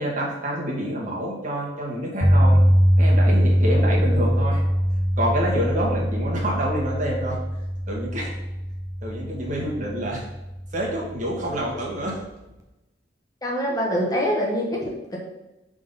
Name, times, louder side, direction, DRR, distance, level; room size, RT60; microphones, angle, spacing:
voice 1, 0.0-2.6 3.0-4.6 5.2-7.4 7.9-8.3 9.0-10.2 10.7-12.2, equal, 40° right, -3 dB, 1.6 m, -27 dB
sound 1, 2.2-12.3, equal, 15° right, 0.8 m, -22 dB
voice 2, 13.4-15.2, equal, 20° left, -2 dB, 1.1 m, -25 dB
5.9 x 3.8 x 5.6 m, 0.96 s
head